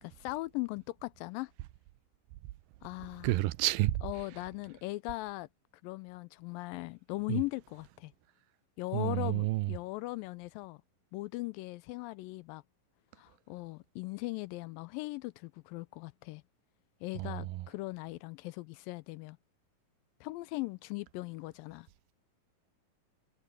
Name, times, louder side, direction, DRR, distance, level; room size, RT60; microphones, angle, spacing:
voice 1, 0.0-1.5 2.8-3.4 4.0-5.5 5.8-8.1 8.8-10.8 11.1-12.6 13.2-16.4 17.0-19.4 20.2-21.9, left 21 dB, 80° left, 2.2 m, -39 dB
voice 2, 3.2-4.0 7.3-7.4 8.9-9.7 17.2-17.6, right 17 dB, 85° right, 2.3 m, -30 dB
omnidirectional pair, 4.2 m